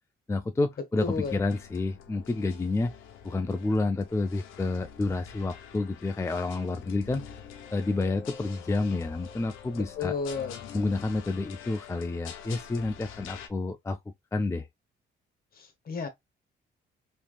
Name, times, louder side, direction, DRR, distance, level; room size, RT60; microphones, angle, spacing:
voice 1, 0.3-2.9 3.2-7.4 7.7-10.1 10.7-14.0 14.3-14.7, left 3 dB, 15° left, 0.4 m, -29 dB
sound 1, 1.0-13.5, left 8 dB, 90° left, 0.7 m, -46 dB
voice 2, 1.0-1.3 9.7-10.6 15.6-16.1, left 5 dB, 50° left, 1.1 m, -32 dB
3.3 x 3.0 x 2.3 m
cardioid pair, 90°, 20 cm